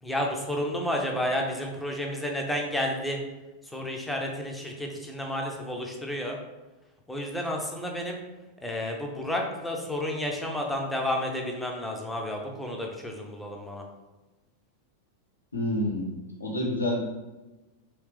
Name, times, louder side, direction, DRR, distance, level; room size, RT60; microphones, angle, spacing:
voice 1, 0.0-3.2 3.6-6.4 7.1-8.2 8.6-13.8, left 1 dB, 5° left, 1 dB, 0.6 m, -31 dB
voice 2, 15.5-16.1 16.4-17.0, left 1 dB, 80° left, -1 dB, 0.8 m, -28 dB
3.2 x 3.1 x 3.3 m, 1.1 s
figure-of-eight pair, 90°, 0 cm